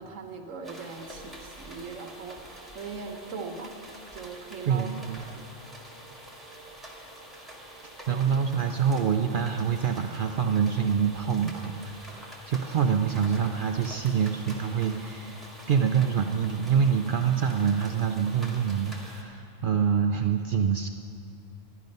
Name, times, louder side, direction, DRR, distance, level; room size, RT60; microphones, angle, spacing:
voice 1, 0.0-3.8 4.1-4.9 5.2-5.4 8.1-8.4, right 4 dB, 80° right, 3 dB, 1.3 m, -40 dB
sound 1, 0.6-19.2, right 1 dB, ahead, 1.5 m, -46 dB
voice 2, 4.6-5.2 8.1-20.9, right 7 dB, 60° right, 5 dB, 0.5 m, -26 dB
12.0 x 11.0 x 5.3 m, 2.6 s
omnidirectional pair, 1.3 m